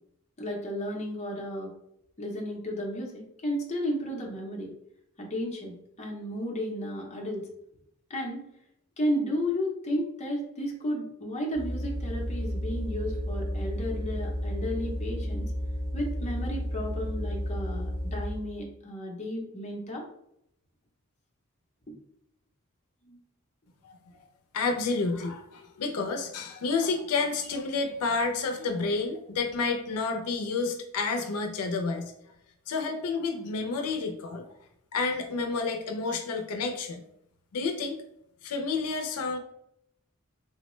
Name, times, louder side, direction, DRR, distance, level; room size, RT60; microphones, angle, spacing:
voice 1, 0.4-1.7 2.2-4.7 5.2-7.4 8.1-8.4 9.0-15.5 15.9-20.0 23.0-23.2, equal, 30° left, -1 dB, 0.6 m, -33 dB
sound 1, 11.5-18.4, equal, 10° right, 0.9 m, -32 dB
voice 2, 24.5-32.1 32.7-34.5 34.9-37.0 37.5-38.0 38.4-39.4, left 4 dB, 85° left, 5 dB, 0.4 m, -30 dB
3.7 x 2.1 x 3.0 m, 0.76 s
head